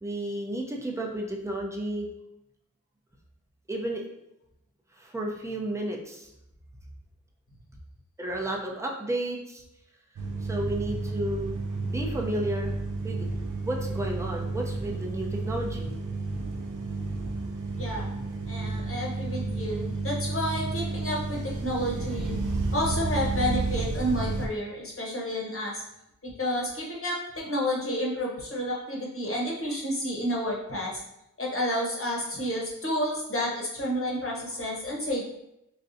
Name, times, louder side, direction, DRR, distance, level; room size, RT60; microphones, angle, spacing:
voice 1, 0.0-2.1 3.7-4.0 4.9-6.3 8.2-9.6 10.4-11.5 11.8-12.7 13.0-13.3 13.6-15.9, right 1 dB, 10° right, -1 dB, 0.7 m, -32 dB
sound 1, 10.2-24.5, right 3 dB, 85° right, 0.5 m, -31 dB
voice 2, 18.4-22.3 22.7-25.8 26.2-31.0 31.4-35.2, equal, 45° left, -3 dB, 1.1 m, -30 dB
4.0 x 2.3 x 2.7 m, 0.84 s
cardioid pair, 45°, 30 cm